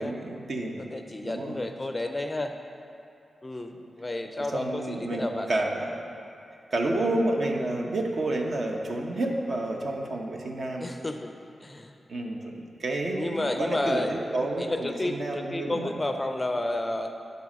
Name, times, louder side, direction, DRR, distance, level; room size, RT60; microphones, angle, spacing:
voice 1, 0.0-0.9 1.2-1.7 4.3-5.9 6.7-10.9 12.1-15.9, right 2 dB, 55° right, 1 dB, 1.0 m, -30 dB
voice 2, 0.8-2.6 3.4-5.5 10.8-11.3 11.6-12.0 13.1-14.1 14.6-17.1, left 1 dB, 20° left, 6 dB, 0.4 m, -31 dB
11.0 x 4.2 x 6.2 m, 2.6 s
wide cardioid pair, 110°, 0 cm